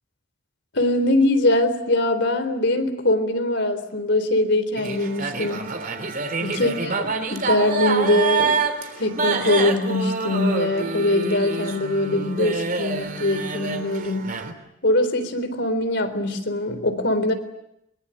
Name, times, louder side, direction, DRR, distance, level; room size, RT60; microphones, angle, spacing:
voice 1, 0.7-5.7 6.4-8.6 9.0-14.4 14.8-17.3, left 1 dB, 65° left, 9 dB, 3.9 m, -22 dB
sound 1, 4.8-14.5, right 4 dB, 45° right, 3.3 m, -27 dB
23.5 x 23.0 x 10.0 m, 0.82 s
head